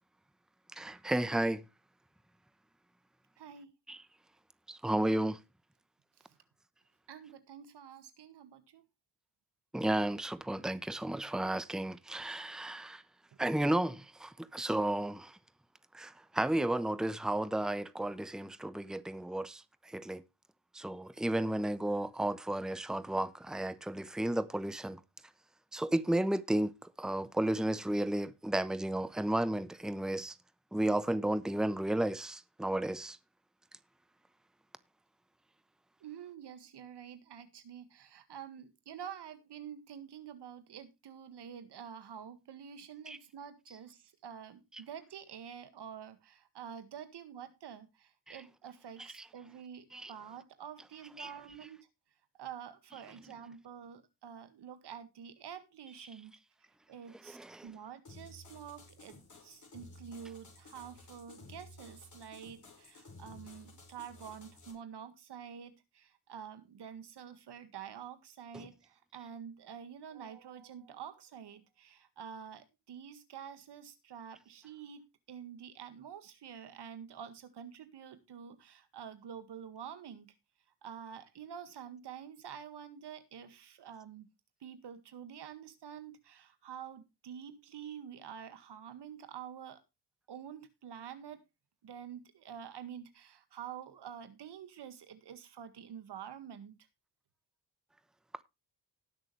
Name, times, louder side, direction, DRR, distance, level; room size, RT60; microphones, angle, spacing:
voice 1, 0.7-1.6 3.9-4.0 4.7-5.4 9.7-13.0 13.4-15.4 15.9-20.2 20.7-25.0 25.7-30.4 30.7-33.2 43.1-43.2 48.3-48.4 49.0-49.3 49.9-50.1 51.2-51.3 57.2-57.7 68.5-68.7, right 1 dB, ahead, 0.9 m, -33 dB
voice 2, 3.4-3.7 6.3-6.4 7.1-8.8 36.0-51.8 52.4-56.3 56.9-57.4 57.6-80.3 80.8-84.3 84.6-89.8 90.3-91.4 91.8-96.8, right 8 dB, 75° right, 1.8 m, -48 dB
sound 1, 58.0-64.7, left 2 dB, 45° left, 5.0 m, -54 dB
19.0 x 6.5 x 3.2 m
cardioid pair, 65°, 41 cm